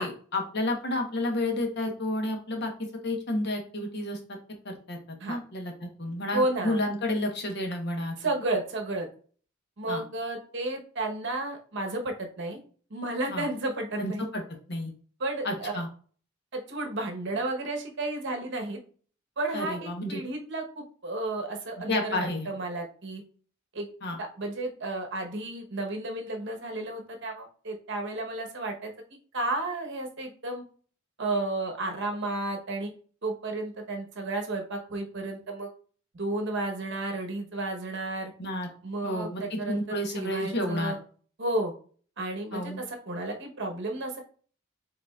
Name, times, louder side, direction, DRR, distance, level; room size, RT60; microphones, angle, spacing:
voice 1, 0.0-4.2 4.6-5.0 5.3-8.1 9.9-10.0 13.3-13.5 14.0-14.4 14.7-14.9 15.4-15.9 19.5-20.2 21.9-22.5 24.0-24.2 38.4-38.7 39.0-40.9 42.5-42.8, left 1 dB, 55° left, 3 dB, 1.0 m, -31 dB
voice 2, 6.3-6.8 8.2-9.1 9.8-12.6 12.9-14.3 15.2-15.7 16.5-18.8 19.4-23.2 23.7-23.9 24.2-28.9 29.3-30.6 31.2-32.9 33.2-35.7 36.1-38.3 38.8-41.0 41.4-41.7 42.2-44.2, right 2 dB, 60° right, 3 dB, 1.0 m, -32 dB
5.0 x 3.9 x 2.3 m, 0.43 s
head